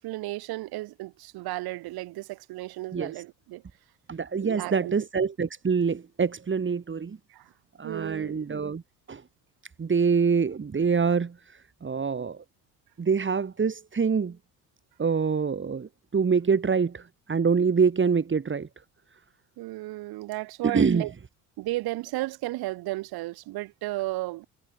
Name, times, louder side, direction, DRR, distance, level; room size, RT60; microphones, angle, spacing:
voice 1, 0.0-3.6 4.4-4.9 7.3-7.5 7.8-8.5 19.6-21.1 21.6-24.5, right 18 dB, 75° right, 7.0 m, -34 dB
voice 2, 2.9-3.2 4.1-7.2 7.8-8.8 9.1-9.2 9.8-12.4 13.0-14.4 15.0-18.7 20.6-21.1, right 5 dB, 30° right, 3.8 m, -25 dB
supercardioid pair, 80°, 38 cm